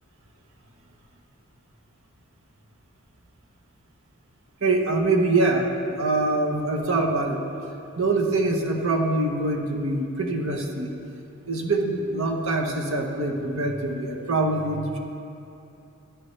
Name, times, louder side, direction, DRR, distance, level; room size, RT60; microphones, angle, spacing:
voice 1, 4.6-7.4 8.0-10.9 11.5-15.0, right 2 dB, 70° right, 2 dB, 1.0 m, -24 dB
16.0 x 11.0 x 3.3 m, 2.7 s
head